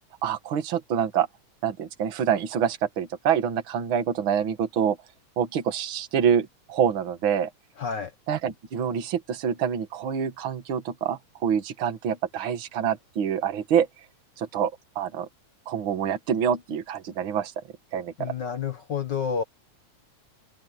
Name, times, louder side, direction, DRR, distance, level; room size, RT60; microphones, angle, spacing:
voice 1, 0.2-1.3 1.6-5.0 5.4-7.5 8.3-13.9 14.4-15.3 15.7-17.6 17.9-18.3, right 8 dB, 50° right, 2.3 m, -26 dB
voice 2, 7.8-8.1 18.2-19.4, left 6 dB, 60° left, 1.1 m, -29 dB
open air
omnidirectional pair, 3.3 m